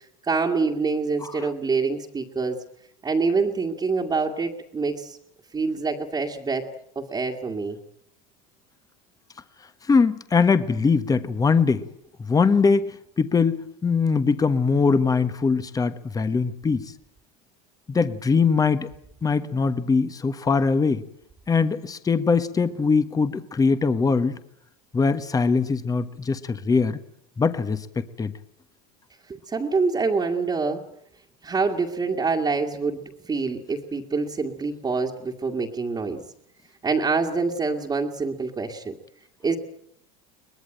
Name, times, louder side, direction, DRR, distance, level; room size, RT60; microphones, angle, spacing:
voice 1, 0.2-2.6 3.0-5.2 5.5-6.7 7.0-7.8 29.3-30.8 31.4-36.2 36.8-38.9 39.4-39.6, right 4 dB, 20° right, -2 dB, 2.1 m, -26 dB
voice 2, 9.9-11.8 12.3-12.9 13.2-16.9 17.9-18.9 19.2-21.0 21.5-24.4 24.9-27.0 27.4-28.3, left 4 dB, 20° left, 12 dB, 1.3 m, -22 dB
23.0 x 19.5 x 9.1 m, 0.69 s
supercardioid pair, 110°, 19 cm